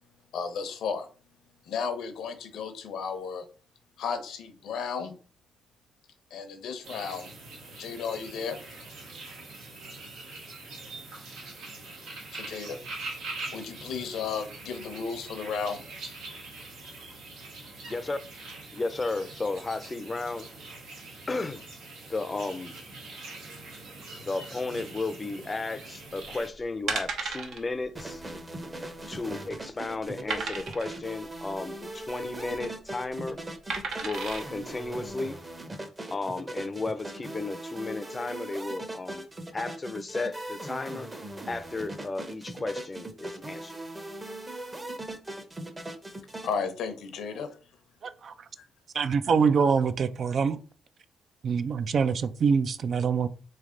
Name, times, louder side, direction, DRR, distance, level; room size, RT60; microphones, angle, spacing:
voice 1, 0.3-1.1 1.7-3.4 4.0-5.1 6.3-7.3 7.8-8.6 12.3-12.8 13.5-15.8 46.4-47.5, left 6 dB, 75° left, 0.7 m, -33 dB
sound 1, 6.8-26.5, right 3 dB, 90° right, 1.4 m, -43 dB
voice 2, 17.9-18.2 18.7-20.5 21.3-21.6 22.1-22.7 23.6-23.7 24.2-28.2 29.1-33.4 34.0-35.4 36.1-39.3 39.5-41.1 41.5-43.8, left 3 dB, 25° left, 0.5 m, -34 dB
sound 2, 26.9-27.6 27.9-28.1 28.4-28.5 29.0-29.5 30.3-31.0 32.3-32.7 33.7-34.4 35.0-35.1, right 4 dB, 70° right, 0.8 m, -33 dB
sound 3, 27.9-46.5, right 1 dB, 20° right, 0.7 m, -39 dB
voice 3, 48.0-48.3 48.9-50.6 51.4-53.3, right 6 dB, 55° right, 0.3 m, -25 dB
3.3 x 3.2 x 3.7 m
cardioid pair, 90°, 0 cm